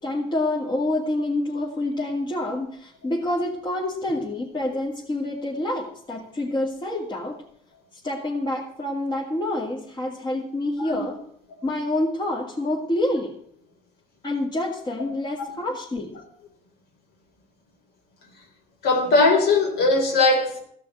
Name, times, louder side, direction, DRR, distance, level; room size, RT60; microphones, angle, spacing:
voice 1, 0.0-7.4 8.0-11.2 11.6-13.3 14.2-16.1, left 1 dB, 25° left, 2.3 m, -27 dB
voice 2, 18.8-20.6, left 3 dB, 75° left, 3.6 m, -19 dB
15.0 x 6.1 x 9.0 m
cardioid pair, 110°, 17 cm